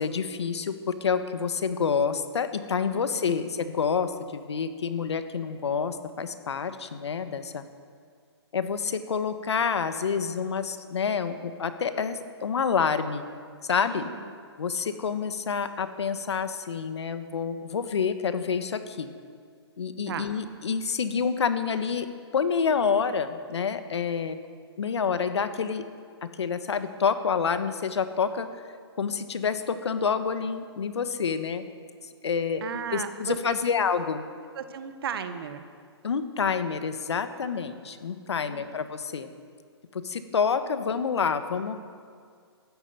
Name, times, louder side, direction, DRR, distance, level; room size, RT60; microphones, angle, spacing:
voice 1, 0.0-7.6 8.5-13.3 13.7-14.1 14.6-19.1 19.8-22.1 22.3-24.4 24.8-25.8 26.2-28.5 29.0-31.6 32.2-32.6 32.9-34.2 36.0-39.3 39.9-41.8, left 6 dB, 75° left, 10 dB, 1.4 m, -28 dB
voice 2, 2.9-3.5 13.9-14.3 20.1-20.3 32.6-33.6 34.5-35.6 38.4-38.6, right 7 dB, 55° right, 9 dB, 1.5 m, -36 dB
13.5 x 11.0 x 8.0 m, 2.1 s
hypercardioid pair, 135°, 15 cm